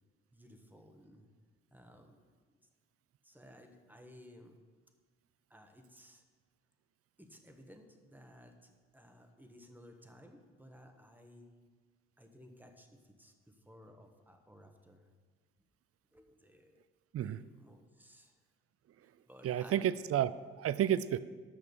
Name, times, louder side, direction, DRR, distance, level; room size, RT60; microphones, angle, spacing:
voice 1, 0.3-1.3 1.7-2.2 2.5-2.6 3.2-4.6 5.5-6.2 7.2-11.5 12.2-15.1 16.1-16.8 17.1-18.3 19.0-19.9, equal, 5° right, 4 dB, 1.3 m, -57 dB
voice 2, 19.4-21.2, right 10 dB, 50° right, 16 dB, 0.5 m, -31 dB
8.0 x 6.0 x 6.9 m, 1.5 s
supercardioid pair, 60°, 29 cm